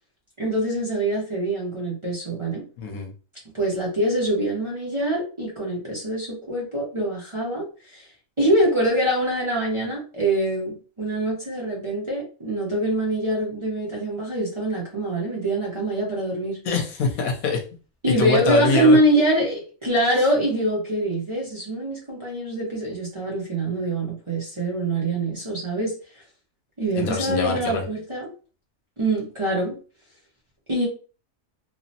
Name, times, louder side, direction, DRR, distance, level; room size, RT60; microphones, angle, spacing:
voice 1, 0.4-2.6 3.5-8.1 8.4-16.6 18.0-25.9 26.8-28.3 29.0-29.8 30.7-30.9, right 1 dB, 30° right, -6 dB, 0.7 m, -24 dB
voice 2, 2.8-3.1 16.6-17.6 18.1-19.0 27.0-27.8, left 4 dB, 85° left, 3 dB, 1.2 m, -24 dB
3.2 x 2.0 x 2.7 m, 0.36 s
omnidirectional pair, 1.5 m